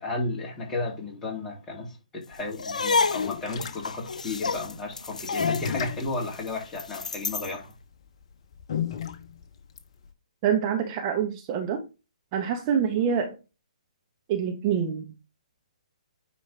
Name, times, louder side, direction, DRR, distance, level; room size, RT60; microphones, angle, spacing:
voice 1, 0.0-7.7, left 2 dB, 15° left, 2.6 m, -33 dB
sound 1, 2.3-10.1, left 9 dB, 45° left, 0.9 m, -35 dB
sound 2, 2.5-7.6, left 4 dB, 70° left, 0.5 m, -29 dB
voice 2, 10.4-11.8 12.3-13.4 14.3-15.1, right 8 dB, 30° right, 1.1 m, -26 dB
9.5 x 4.4 x 3.4 m
figure-of-eight pair, 130°, 4 cm